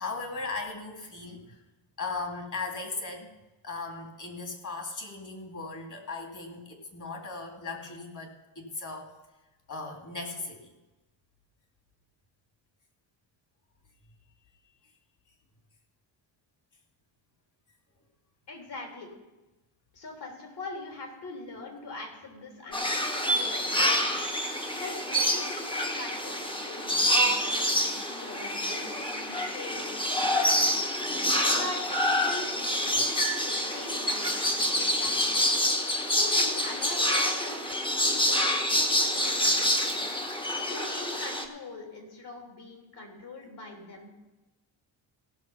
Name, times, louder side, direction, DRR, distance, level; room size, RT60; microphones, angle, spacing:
voice 1, 0.0-1.6 2.0-3.3 3.6-9.1 9.7-10.7, left 3 dB, 40° left, 3 dB, 2.5 m, -37 dB
voice 2, 18.5-19.1 19.9-30.9 31.2-35.4 36.1-40.2 40.7-44.1, left 2 dB, 60° left, 1 dB, 3.4 m, -43 dB
sound 1, 22.7-41.5, left 1 dB, 10° left, 1.1 m, -27 dB
17.0 x 6.5 x 5.7 m, 1.1 s
cardioid pair, 125°, 46 cm